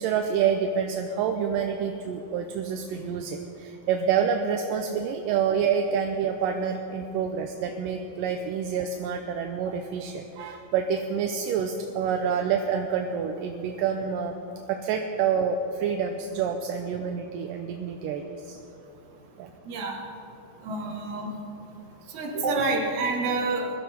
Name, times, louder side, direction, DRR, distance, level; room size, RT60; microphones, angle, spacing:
voice 1, 0.0-14.3 14.7-18.6 19.4-19.5, right 7 dB, 80° right, 4 dB, 2.3 m, -27 dB
voice 2, 19.7-20.0 20.6-21.3 22.1-23.7, right 3 dB, 60° right, 1 dB, 2.9 m, -28 dB
21.0 x 13.5 x 4.4 m, 2.8 s
omnidirectional pair, 4.0 m